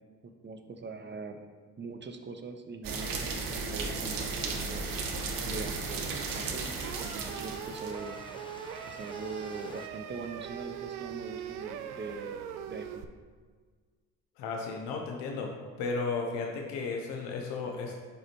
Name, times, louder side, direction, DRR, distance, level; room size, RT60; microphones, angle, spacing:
voice 1, 0.2-1.4 1.8-4.9 5.5-6.7 7.0-8.2 8.8-12.4 12.7-13.1, right 4 dB, 25° right, 6 dB, 0.7 m, -42 dB
sound 1, 2.8-7.9, right 4 dB, 50° right, 0.9 m, -35 dB
Stream, 4.1-9.9, left 3 dB, 10° left, 0.4 m, -50 dB
sound 2, 6.8-13.0, right 9 dB, 80° right, 0.5 m, -41 dB
voice 2, 14.4-15.5 15.8-18.0, left 4 dB, 65° left, 1 dB, 0.8 m, -34 dB
4.9 x 4.7 x 4.5 m, 1.5 s
hypercardioid pair, 45°, 44 cm